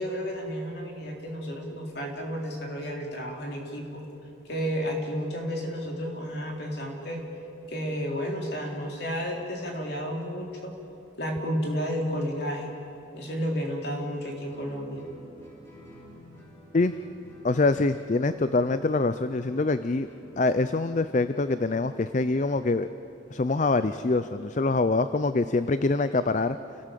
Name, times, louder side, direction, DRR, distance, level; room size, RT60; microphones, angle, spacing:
voice 1, 0.0-4.0 4.5-7.3 7.7-10.7 11.2-12.7 13.1-15.0, equal, 55° left, 0 dB, 3.6 m, -32 dB
Guitar, 14.5-21.9, right 1 dB, 15° left, 6.3 m, -50 dB
voice 2, 17.4-20.1 20.4-22.9 23.3-26.6, left 3 dB, 40° left, 12 dB, 0.5 m, -25 dB
28.5 x 17.5 x 7.6 m, 2.8 s
head